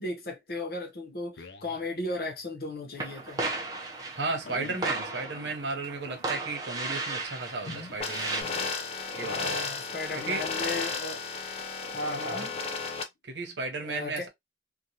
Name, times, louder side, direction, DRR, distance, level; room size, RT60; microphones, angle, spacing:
voice 1, 0.0-3.4 9.2-11.2 11.9-12.5 13.8-14.3, left 2 dB, 55° left, 1.0 m, -35 dB
sound 1, 0.9-3.1 3.4-3.5 3.6-3.8 4.4-9.5 9.9-10.2 10.6-10.9 11.4-11.7 12.2-12.3 13.0-13.1, left 3 dB, 80° left, 0.5 m, -49 dB
sound 2, 3.0-8.4, right 3 dB, 20° right, 0.6 m, -35 dB
voice 2, 4.1-8.6 9.2-9.6 10.2-10.4 12.3-12.5 13.2-14.3, right 3 dB, 85° right, 0.9 m, -34 dB
sound 3, 8.0-13.0, left 4 dB, 35° left, 0.4 m, -34 dB
2.8 x 2.3 x 2.8 m
head